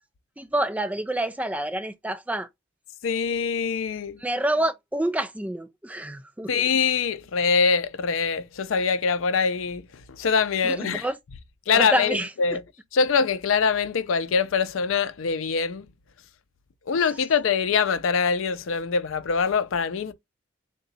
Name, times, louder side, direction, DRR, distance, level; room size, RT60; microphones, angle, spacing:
voice 1, 0.4-2.5 4.2-6.5 10.6-11.2 11.7-12.3, right 1 dB, 5° right, 0.3 m, -27 dB
voice 2, 3.0-4.2 6.5-9.9 10.2-11.0 11.7-12.6 12.9-15.9 16.9-20.1, left 5 dB, 85° left, 0.5 m, -24 dB
3.8 x 2.2 x 3.9 m
head